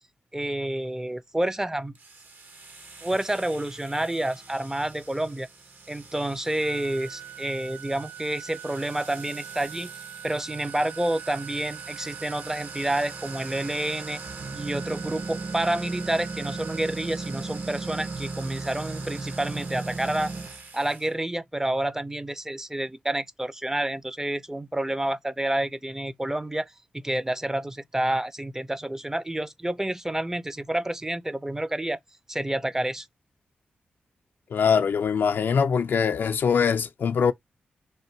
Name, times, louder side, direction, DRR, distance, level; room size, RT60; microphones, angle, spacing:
voice 1, 0.3-2.0 3.0-5.5 5.9-9.9 10.2-14.2 14.5-20.3 20.7-32.0 32.3-33.1, right 1 dB, 15° right, 0.4 m, -29 dB
sound 1, 2.0-21.1, right 3 dB, 60° right, 0.8 m, -39 dB
Organ, 6.6-17.7, right 12 dB, 85° right, 0.4 m, -44 dB
voice 2, 34.5-37.3, left 6 dB, 70° left, 0.4 m, -22 dB
3.3 x 2.6 x 4.3 m
cardioid pair, 50°, 4 cm